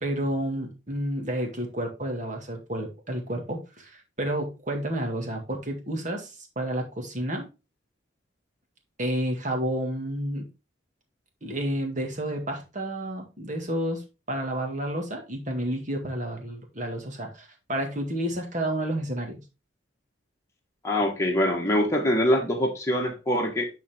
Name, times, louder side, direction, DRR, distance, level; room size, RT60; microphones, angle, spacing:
voice 1, 0.0-7.5 9.0-10.5 11.4-19.4, right 1 dB, 40° right, 1.9 m, -30 dB
voice 2, 20.8-23.7, left 1 dB, 15° left, 1.5 m, -24 dB
9.9 x 4.1 x 3.6 m
head